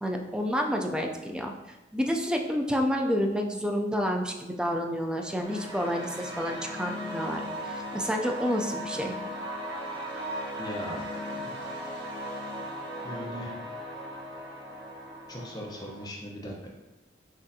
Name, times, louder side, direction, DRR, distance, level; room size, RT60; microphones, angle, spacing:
voice 1, 0.0-1.5 1.9-9.2, equal, 5° right, 2 dB, 0.3 m, -29 dB
sound 1, 5.0-16.1, equal, 70° right, 1.1 m, -37 dB
voice 2, 10.6-11.0 11.3-11.5 12.2-12.4 13.0-13.5 15.3-16.7, equal, 20° left, -2 dB, 0.8 m, -39 dB
6.2 x 2.5 x 2.7 m, 1.0 s
head